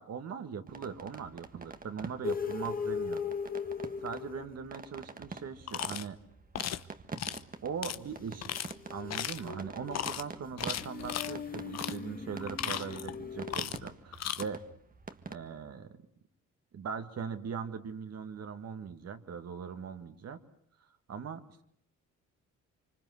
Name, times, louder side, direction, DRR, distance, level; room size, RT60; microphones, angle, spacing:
voice 1, 0.0-3.2 4.0-6.2 7.6-8.5 8.9-14.6 15.3-16.0 16.7-20.4 21.1-21.6, right 6 dB, 55° right, 7 dB, 2.3 m, -40 dB
sound 1, 0.7-15.3, right 4 dB, 30° right, 1.7 m, -47 dB
sound 2, 2.2-4.9 8.4-13.6, left 6 dB, 30° left, 2.0 m, -39 dB
sound 3, 5.7-6.1 6.5-6.8 7.2-7.4 7.8-8.0 8.4-8.7 9.1-9.5 9.9-10.2 10.6-11.3 11.7-12.0 12.4-13.2 13.5-13.9 14.1-14.4, left 10 dB, 60° left, 1.1 m, -36 dB
25.5 x 25.0 x 8.1 m, 0.67 s
cardioid pair, 90°, 30 cm